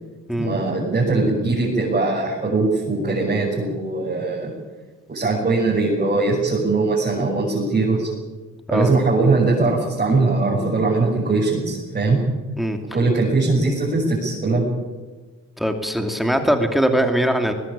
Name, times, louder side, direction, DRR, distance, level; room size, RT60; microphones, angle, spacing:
voice 1, 0.4-4.5 5.1-8.1 8.7-12.2 12.9-14.6, right 3 dB, 30° right, -3 dB, 6.8 m, -20 dB
voice 2, 15.6-17.5, equal, ahead, 5 dB, 2.7 m, -21 dB
20.5 x 20.0 x 8.8 m, 1.3 s
cardioid pair, 90°, 30 cm